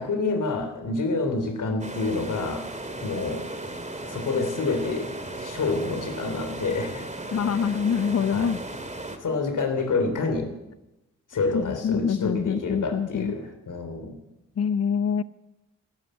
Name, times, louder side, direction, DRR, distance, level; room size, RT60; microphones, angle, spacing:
voice 1, 0.0-2.7 3.0-3.5 4.0-7.1 8.3-8.5 9.2-10.5 11.3-14.2, left 3 dB, 65° left, 6 dB, 3.3 m, -28 dB
sound 1, 1.8-9.2, right 2 dB, 20° right, 2.6 m, -36 dB
voice 2, 7.3-8.6 11.5-13.3 14.6-15.2, left 7 dB, 45° left, 16 dB, 0.8 m, -25 dB
14.0 x 12.5 x 7.9 m, 0.96 s
supercardioid pair, 45°, 34 cm